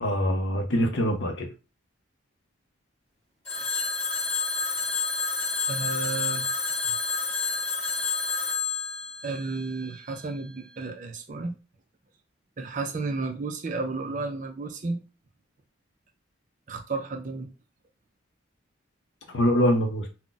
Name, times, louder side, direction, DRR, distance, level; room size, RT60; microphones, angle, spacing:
voice 1, 0.0-1.5 19.3-20.1, equal, 60° left, 0.6 m, -24 dB
Telephone, 3.5-10.3, left 4 dB, 30° left, 1.3 m, -29 dB
voice 2, 5.7-6.5 9.2-11.5 12.6-15.0 16.7-17.5, right 3 dB, 40° right, 0.4 m, -32 dB
2.3 x 2.1 x 3.9 m
head